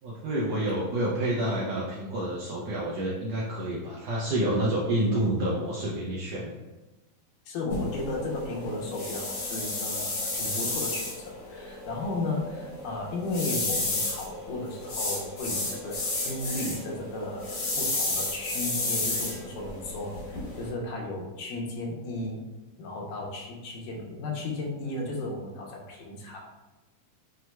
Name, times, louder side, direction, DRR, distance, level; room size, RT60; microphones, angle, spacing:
voice 1, 0.0-6.5, right 1 dB, 80° right, -6 dB, 1.5 m, -28 dB
voice 2, 7.5-22.4 22.8-26.4, left 2 dB, 85° left, -1 dB, 2.3 m, -34 dB
sound 1, 7.7-20.7, left 2 dB, 65° left, 1.2 m, -32 dB
6.0 x 2.9 x 2.2 m, 1.1 s
omnidirectional pair, 3.6 m